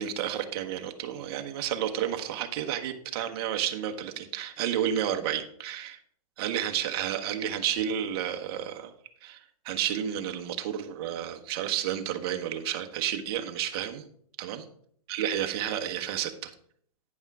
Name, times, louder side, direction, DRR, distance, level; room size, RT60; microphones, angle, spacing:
voice 1, 0.0-6.0 6.4-8.9 9.2-9.4 9.6-14.1 14.4-14.6 15.1-16.5, right 10 dB, 45° right, 6 dB, 1.1 m, -31 dB
9.3 x 5.4 x 4.7 m, 0.62 s
hypercardioid pair, 150°, 19 cm